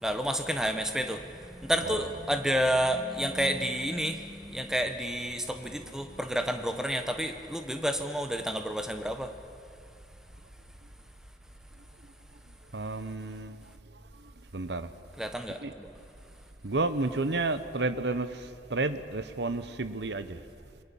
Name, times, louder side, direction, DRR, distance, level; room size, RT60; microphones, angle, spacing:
voice 1, 0.0-9.3 15.2-15.9, equal, 5° right, 6 dB, 1.3 m, -30 dB
voice 2, 12.7-13.6 14.5-14.9 15.6-15.7 16.6-20.4, right 2 dB, 80° right, 12 dB, 1.1 m, -31 dB
26.5 x 22.0 x 7.2 m, 2.4 s
head